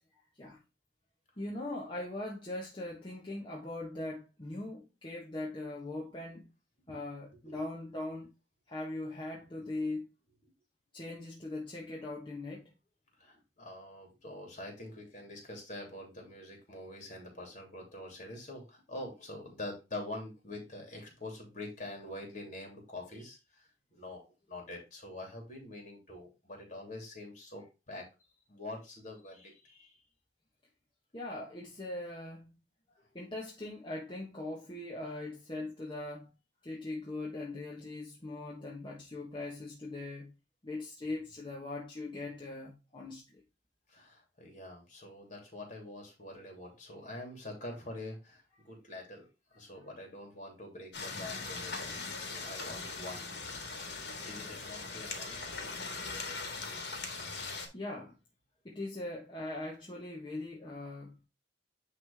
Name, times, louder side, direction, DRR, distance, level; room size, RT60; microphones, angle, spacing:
voice 1, 1.4-6.5 6.9-8.3 8.7-10.1 10.9-12.7 31.1-32.5 33.1-36.3 36.6-40.3 40.6-43.4 57.7-58.1 58.6-61.2, left 2 dB, 25° left, 1.3 m, -40 dB
voice 2, 13.2-28.0 28.5-30.0 43.9-52.0 52.3-55.8, left 1 dB, 45° left, 3.0 m, -45 dB
sound 1, 50.9-57.7, left 4 dB, 65° left, 1.9 m, -40 dB
10.0 x 3.4 x 3.5 m
head